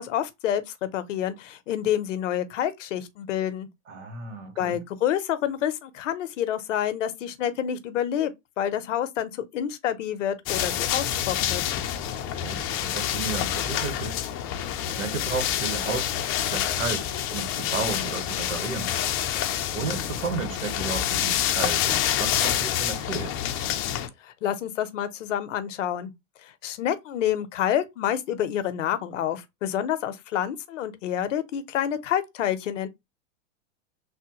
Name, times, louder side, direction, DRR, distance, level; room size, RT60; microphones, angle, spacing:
voice 1, 0.0-3.7 4.6-8.3 8.6-11.6 24.2-26.1 26.4-32.9, left 10 dB, 80° left, 0.7 m, -28 dB
voice 2, 3.9-4.8 12.1-14.2 14.8-18.9 19.7-23.4, right 5 dB, 85° right, 1.1 m, -33 dB
sound 1, 10.5-24.1, left 11 dB, 35° left, 0.5 m, -27 dB
3.4 x 2.1 x 2.9 m
hypercardioid pair, 115°, 37 cm